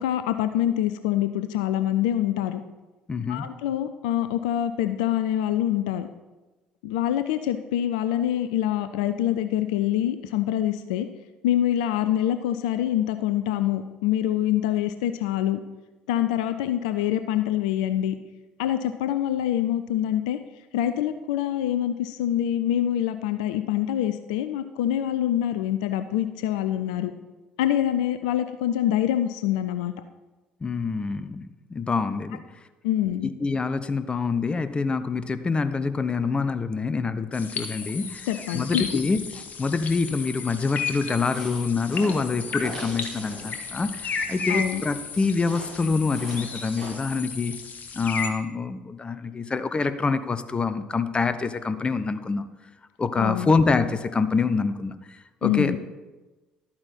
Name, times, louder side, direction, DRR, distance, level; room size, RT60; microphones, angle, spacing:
voice 1, 0.0-2.6 3.3-6.1 6.8-11.1 11.4-15.6 16.1-18.1 18.6-20.4 20.7-27.1 27.6-29.9 32.8-33.3 38.3-39.0 44.5-44.8 53.2-53.5 55.4-55.8, left 11 dB, 65° left, 10 dB, 0.5 m, -25 dB
voice 2, 3.1-3.5 30.6-32.4 33.2-38.3 38.5-47.6 47.9-52.5 53.0-55.8, left 4 dB, 20° left, 12 dB, 0.7 m, -26 dB
sound 1, 37.3-48.3, left 5 dB, 35° left, 1.3 m, -34 dB
sound 2, 41.0-46.9, right 1 dB, 75° right, 3.9 m, -42 dB
12.0 x 8.7 x 4.3 m, 1.2 s
figure-of-eight pair, 55°, 5 cm